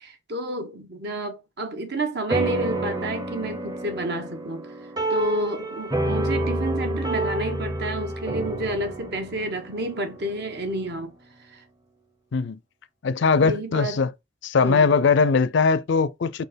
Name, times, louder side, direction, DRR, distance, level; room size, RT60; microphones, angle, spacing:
voice 1, 0.0-4.7 5.1-11.1 11.5-11.6 13.4-14.0 14.6-14.9, right 1 dB, 60° right, 1.3 m, -30 dB
sound 1, 2.3-11.0, right 2 dB, 20° right, 0.8 m, -29 dB
voice 2, 13.0-14.1 14.4-16.4, left 5 dB, 65° left, 0.4 m, -20 dB
4.6 x 4.3 x 5.1 m
head